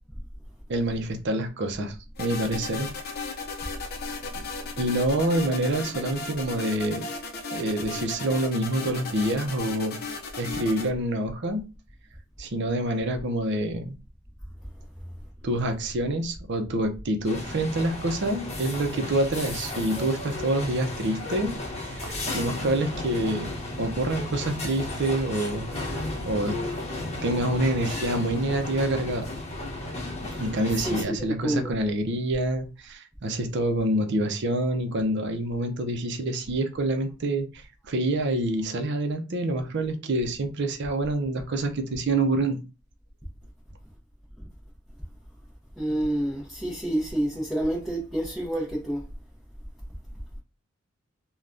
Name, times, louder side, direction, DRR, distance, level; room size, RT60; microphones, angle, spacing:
voice 1, 0.7-2.9 4.4-4.5 4.8-7.0 7.5-10.0 10.4-11.7 12.4-14.0 15.4-23.5 23.8-26.0 26.3-26.6 27.2-29.3 30.4-42.6, right 1 dB, 60° right, 0.6 m, -27 dB
sound 1, 2.2-10.9, left 3 dB, 50° left, 0.5 m, -36 dB
sound 2, 17.2-31.0, left 1 dB, 35° left, 0.9 m, -34 dB
voice 2, 30.3-31.7 45.8-49.0, right 1 dB, ahead, 0.7 m, -29 dB
3.4 x 2.2 x 2.5 m
head